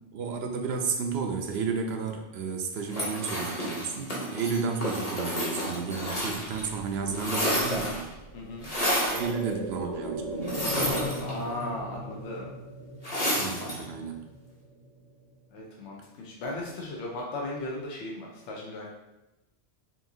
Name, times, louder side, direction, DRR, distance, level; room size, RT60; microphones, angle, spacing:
voice 1, 0.1-8.1 9.1-10.5 13.3-14.3, right 5 dB, 70° right, 4 dB, 0.8 m, -32 dB
sound 1, 2.9-6.7 6.9-8.1 8.6-9.3 10.4-11.6 13.0-13.8, equal, 35° left, 1.1 m, -30 dB
Presence - Sci-fi, 6.1-15.6 16.0-16.1, right 1 dB, 35° right, 0.6 m, -39 dB
voice 2, 8.3-8.7 11.2-12.5 15.5-18.9, left 2 dB, 80° left, -2 dB, 1.0 m, -37 dB
5.5 x 2.6 x 2.7 m, 0.98 s
omnidirectional pair, 1.2 m